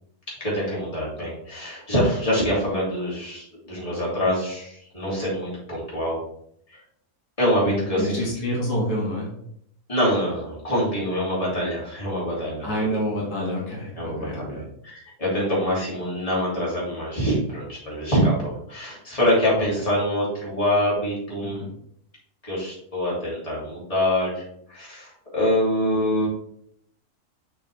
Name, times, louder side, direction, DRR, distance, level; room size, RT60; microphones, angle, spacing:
voice 1, 0.4-6.2 6.7-6.8 7.4-8.2 9.9-12.9 13.9-21.7 22.4-24.4 24.7-26.3, equal, 20° left, -6 dB, 3.1 m, -25 dB
voice 2, 7.7-9.3 12.6-14.6 19.5-19.6 21.4-21.7, equal, 85° left, -3 dB, 2.4 m, -28 dB
6.4 x 6.2 x 3.4 m, 0.70 s
omnidirectional pair, 1.6 m